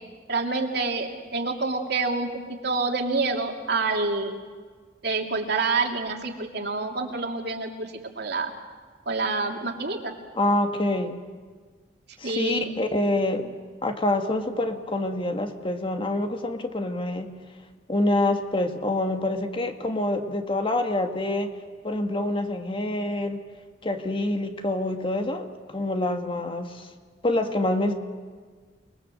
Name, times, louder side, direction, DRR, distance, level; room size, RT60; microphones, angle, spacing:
voice 1, 0.3-2.3 2.6-4.4 5.0-8.5 9.1-10.1 12.2-12.7, right 3 dB, 65° right, 3 dB, 2.8 m, -27 dB
voice 2, 10.3-11.2 12.2-13.5 13.8-17.4 17.9-21.5 21.8-23.4 23.8-26.9 27.2-27.9, left 1 dB, 30° left, 5 dB, 1.8 m, -26 dB
29.5 x 21.0 x 7.7 m, 1.5 s
head